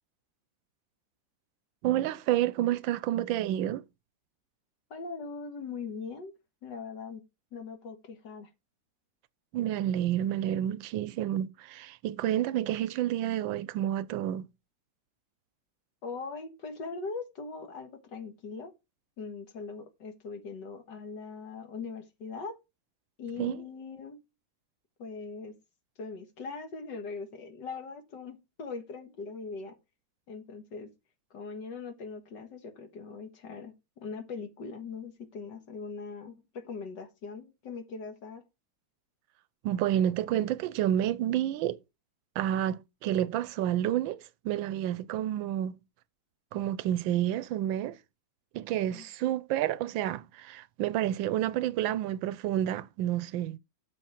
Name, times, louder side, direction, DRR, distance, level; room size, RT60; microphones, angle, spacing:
voice 1, 1.8-3.8 9.5-14.5 23.4-23.6 39.6-41.8 42.4-45.8 46.5-48.0 48.5-53.6, right 12 dB, 90° right, 1.4 m, -29 dB
voice 2, 4.9-6.3 6.6-7.2 7.5-8.5 16.0-18.7 19.2-22.6 23.2-24.2 25.0-25.6 26.0-29.8 30.3-30.9 31.3-33.7 34.0-38.4 48.9-49.1, left 4 dB, 70° left, 2.1 m, -41 dB
7.7 x 6.8 x 4.4 m
omnidirectional pair, 2.0 m